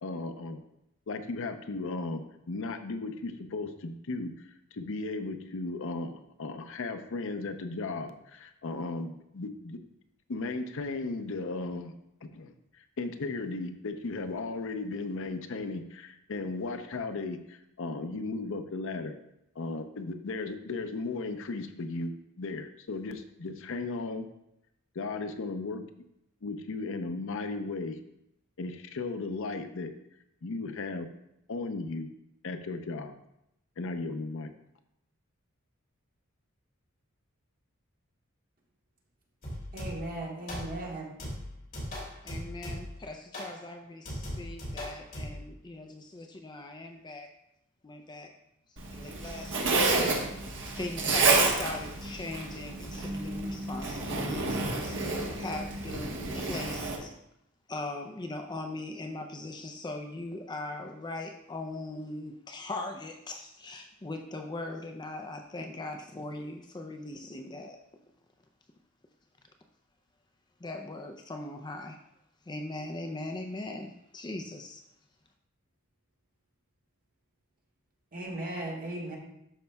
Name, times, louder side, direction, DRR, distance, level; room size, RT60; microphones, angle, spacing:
voice 1, 0.0-0.6 1.1-4.3 4.7-9.8 10.3-11.9 12.2-12.5 13.0-19.1 19.6-22.1 22.4-24.3 24.9-25.8 26.4-28.0 28.6-29.9 30.4-31.1 31.5-32.1 32.4-33.2 33.8-34.5, left 3 dB, 65° left, 8 dB, 0.6 m, -35 dB
sound 1, 39.4-40.2 40.5-40.9 41.2-43.0 43.3-43.6 44.1-45.4, equal, 45° left, 2.7 m, -39 dB
voice 2, 39.7-41.1 78.1-79.2, right 2 dB, 45° right, -2 dB, 1.6 m, -37 dB
voice 3, 42.2-47.3 47.8-48.3 48.9-50.4 50.7-55.0 55.3-57.1 57.7-67.8 70.6-72.0 72.5-74.8, left 2 dB, 20° left, 4 dB, 0.4 m, -40 dB
Zipper (clothing), 48.8-57.0, right 3 dB, 65° right, 1.2 m, -30 dB
12.5 x 5.2 x 2.3 m, 0.80 s
head